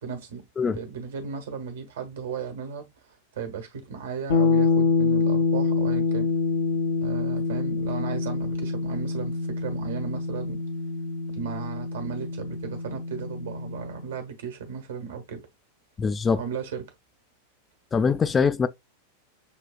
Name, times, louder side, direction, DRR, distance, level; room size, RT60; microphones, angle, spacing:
voice 1, 0.0-2.9 3.4-6.3 7.0-10.6 11.3-15.5 16.4-16.9, right 6 dB, 60° right, 1.2 m, -36 dB
sound 1, 4.3-14.1, left 4 dB, 60° left, 0.6 m, -26 dB
voice 2, 16.0-16.4 17.9-18.7, left 5 dB, 20° left, 0.3 m, -22 dB
7.1 x 2.4 x 2.3 m
figure-of-eight pair, 90°, 0 cm